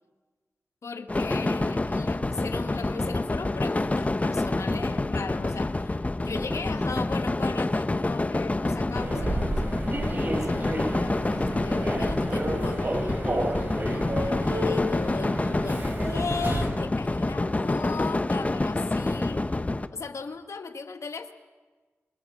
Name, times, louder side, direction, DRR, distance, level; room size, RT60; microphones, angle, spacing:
voice 1, 0.8-6.0 6.2-9.9 10.3-19.5 19.9-21.3, left 4 dB, 75° left, 8 dB, 1.3 m, -37 dB
sound 1, 1.1-19.9, left 2 dB, 30° left, 1.0 m, -27 dB
Human voice / Subway metro underground, 8.9-16.9, right 1 dB, 40° right, 3.7 m, -31 dB
27.5 x 15.5 x 8.4 m, 1.3 s
cardioid pair, 55°, 5 cm